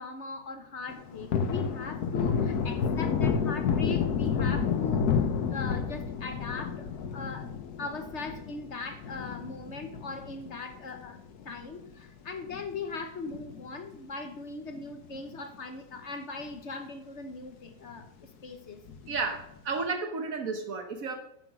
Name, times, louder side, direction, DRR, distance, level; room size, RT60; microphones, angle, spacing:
voice 1, 0.0-5.1 5.5-7.5 7.8-11.2 11.4-18.1 18.4-18.8, left 3 dB, 50° left, 7 dB, 1.4 m, -39 dB
Thunder, 0.9-11.6 12.0-12.1 12.5-14.0 14.2-14.4 14.7-15.6 16.0-16.1 16.4-16.5 18.9-19.4, left 6 dB, 90° left, 1.5 m, -30 dB
voice 2, 19.1-21.2, right 4 dB, 65° right, 6 dB, 1.4 m, -32 dB
11.0 x 6.9 x 6.0 m, 0.77 s
omnidirectional pair, 1.6 m